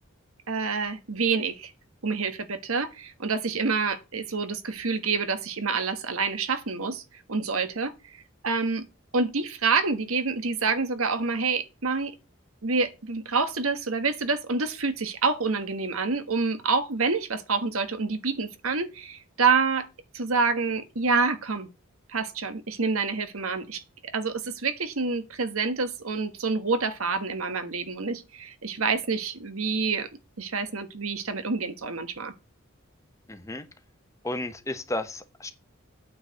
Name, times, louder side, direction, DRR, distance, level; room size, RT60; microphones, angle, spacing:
voice 1, 0.5-1.7 2.0-7.0 7.3-7.9 8.4-8.9 9.1-12.1 12.6-19.9 20.1-21.7 22.1-30.1 30.4-32.3, right 4 dB, 90° right, 1.4 m, -27 dB
voice 2, 33.3-33.7 34.2-35.5, left 1 dB, 15° left, 1.0 m, -33 dB
8.8 x 4.8 x 7.7 m
head